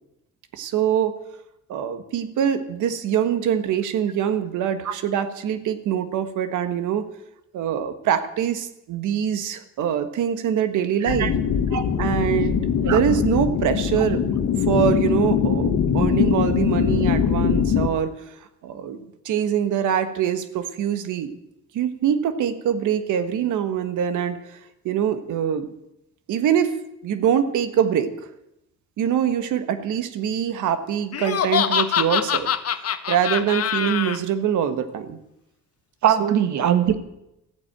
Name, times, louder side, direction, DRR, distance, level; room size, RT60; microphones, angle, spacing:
voice 1, 0.5-1.2 1.7-7.1 7.5-11.3 12.0-12.6 12.9-14.2 14.7-18.4 18.6-21.3 21.7-24.6 24.8-25.7 26.3-26.8 27.0-28.1 29.0-32.5 33.1-35.2 36.2-36.4, right 9 dB, 85° right, 10 dB, 1.5 m, -24 dB
sound 1, 11.1-17.9, left 7 dB, 85° left, 1.6 m, -22 dB
Laughter, 31.1-34.2, left 9 dB, 55° left, 1.1 m, -24 dB
voice 2, 36.0-37.0, right 9 dB, 70° right, 10 dB, 1.6 m, -20 dB
14.5 x 9.0 x 8.8 m, 0.86 s
cardioid pair, 90°, 30 cm